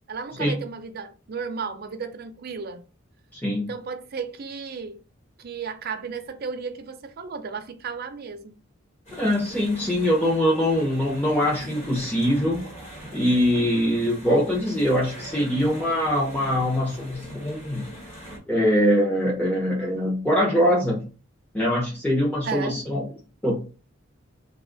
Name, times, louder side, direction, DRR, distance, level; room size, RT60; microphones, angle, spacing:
voice 1, 0.1-2.8 3.6-5.0 5.4-8.5 22.4-22.8, right 5 dB, 50° right, 0.5 m, -34 dB
voice 2, 3.3-3.7 9.2-12.7 13.1-17.8 18.5-21.1 21.5-23.0 23.4-23.6, equal, 10° left, 0.7 m, -23 dB
sound 1, 9.1-18.4, equal, 35° left, 1.2 m, -42 dB
2.8 x 2.3 x 3.8 m
head